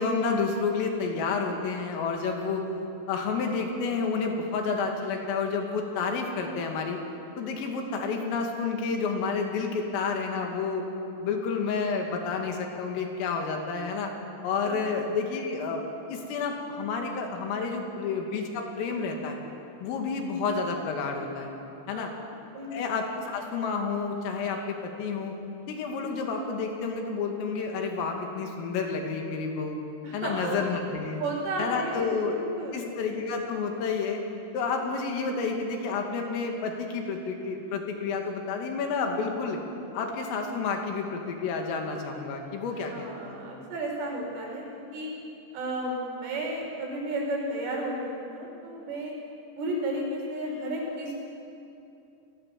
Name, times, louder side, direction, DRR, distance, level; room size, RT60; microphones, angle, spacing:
voice 1, 0.0-2.7 3.1-7.0 7.4-10.9 11.2-14.1 14.4-15.8 16.1-19.4 19.8-21.5 21.9-22.1 22.7-25.3 25.7-29.8 30.1-31.2 31.6-32.4 32.7-34.2 34.5-39.6 39.9-43.4, left 4 dB, 80° left, 2 dB, 4.9 m, -30 dB
voice 2, 14.6-14.9 21.9-22.2 22.5-22.8 30.0-30.6 31.2-32.9 42.9-45.1 45.5-49.1 49.6-51.2, right 1 dB, 70° right, -1 dB, 7.5 m, -33 dB
29.5 x 19.0 x 7.6 m, 2.7 s
omnidirectional pair, 5.9 m